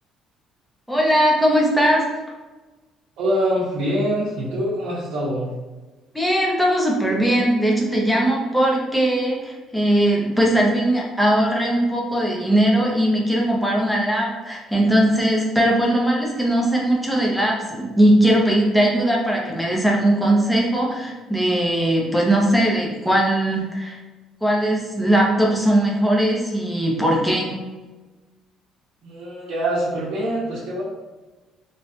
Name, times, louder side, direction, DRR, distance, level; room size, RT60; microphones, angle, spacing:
voice 1, 0.9-2.1 6.1-24.0 24.4-27.5, right 1 dB, ahead, -3 dB, 0.6 m, -19 dB
voice 2, 3.2-5.5 29.0-30.8, equal, 70° right, -8 dB, 0.7 m, -24 dB
3.1 x 2.2 x 2.8 m, 1.2 s
cardioid pair, 155°, 0 cm